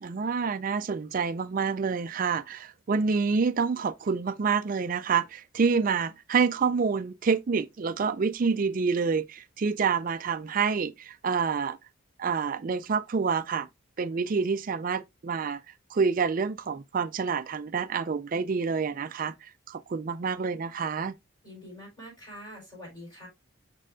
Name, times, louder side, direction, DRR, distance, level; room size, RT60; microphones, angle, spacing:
voice 1, 0.0-11.8 12.2-13.7 14.0-15.6 15.9-21.1, right 5 dB, 40° right, 0.3 m, -27 dB
voice 2, 21.4-23.3, equal, 20° left, 4.6 m, -45 dB
6.5 x 6.3 x 2.5 m
head